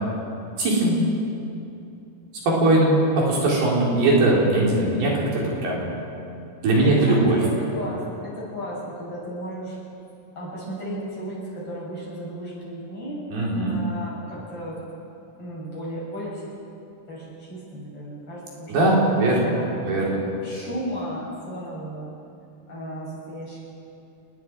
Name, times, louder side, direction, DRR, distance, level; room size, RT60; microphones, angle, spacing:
voice 1, 0.6-1.0 2.5-5.9 6.6-7.4 13.3-13.8 18.7-19.5 19.8-20.2, right 2 dB, 65° right, -4 dB, 5.8 m, -20 dB
voice 2, 6.6-9.8 10.3-14.8 15.4-16.4 17.1-19.7 20.4-22.1 22.7-23.6, equal, 30° left, -7 dB, 8.0 m, -34 dB
30.0 x 20.5 x 4.7 m, 2.7 s
omnidirectional pair, 4.9 m